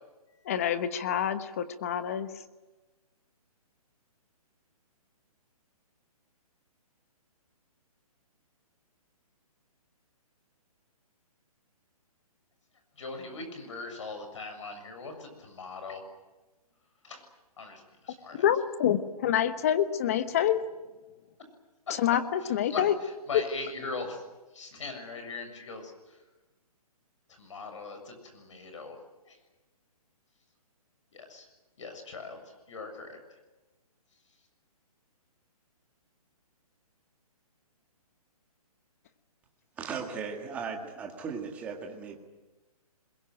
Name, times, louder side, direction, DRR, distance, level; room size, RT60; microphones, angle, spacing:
voice 1, 0.4-2.3 18.4-20.6 22.0-22.9 23.3-23.4, left 10 dB, 25° left, 12 dB, 1.1 m, -27 dB
voice 2, 13.0-16.0 17.0-17.2 17.6-18.5 22.4-24.2 24.5-26.2 27.4-29.0 29.3-29.4 31.1-31.5 31.8-33.2, left 3 dB, 55° left, 6 dB, 7.1 m, -40 dB
voice 3, 39.8-42.1, right 5 dB, 5° right, 2 dB, 1.8 m, -37 dB
25.0 x 22.0 x 9.2 m, 1.2 s
hypercardioid pair, 175°, 19 cm